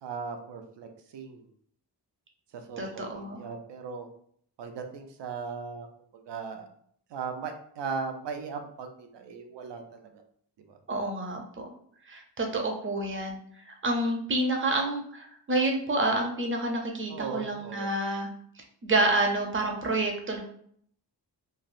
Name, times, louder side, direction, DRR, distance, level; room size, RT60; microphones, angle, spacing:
voice 1, 0.0-1.5 2.5-4.1 4.6-5.9 6.1-6.7 7.1-10.2 10.7-10.8 17.1-17.9, right 5 dB, 80° right, 5 dB, 0.6 m, -38 dB
voice 2, 2.8-3.4 10.9-11.7 12.1-13.4 13.8-18.3 18.8-20.4, right 2 dB, 30° right, 2 dB, 0.6 m, -28 dB
3.1 x 2.4 x 2.5 m, 0.63 s
wide cardioid pair, 110°, 42 cm